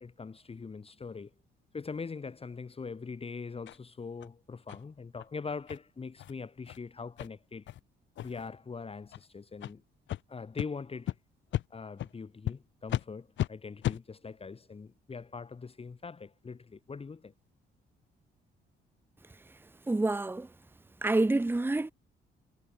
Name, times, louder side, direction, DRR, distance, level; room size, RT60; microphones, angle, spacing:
voice 1, 0.0-1.3 1.7-7.7 8.2-9.8 10.3-11.1 11.7-17.3, left 5 dB, 30° left, 1.7 m, -42 dB
sound 1, 3.7-3.8 4.2-4.3 4.7-4.8 5.2-5.3 5.7-5.8 6.2-6.3 6.7-6.8 7.2-7.3 7.7-7.8 8.2-8.5 9.1-9.2 9.6-9.7 10.1-10.2 10.6-10.7 11.1-11.2 11.5-11.7 12.0-12.1 12.5-12.6 12.9-13.0 13.4-13.5 13.8-14.0, left 13 dB, 70° left, 0.8 m, -34 dB
voice 2, 19.9-20.5 21.0-21.9, right 2 dB, 10° right, 1.0 m, -27 dB
cardioid pair, 90°, 20 cm